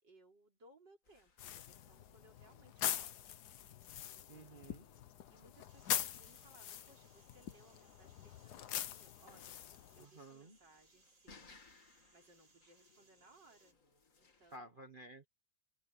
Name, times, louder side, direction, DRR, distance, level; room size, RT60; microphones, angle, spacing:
voice 1, 0.0-3.4 4.3-9.6 9.9-11.6 12.1-13.8 14.2-14.7, right 2 dB, 55° right, 5.2 m, -66 dB
sound 1, 1.0-14.6, left 4 dB, 40° left, 2.4 m, -67 dB
sound 2, 1.4-10.1, left 11 dB, 60° left, 1.2 m, -43 dB
voice 2, 4.3-4.8 10.0-10.6 14.5-15.3, right 1 dB, 30° right, 1.2 m, -53 dB
sound 3, 5.7-13.7, right 3 dB, 80° right, 7.2 m, -70 dB
open air
omnidirectional pair, 2.3 m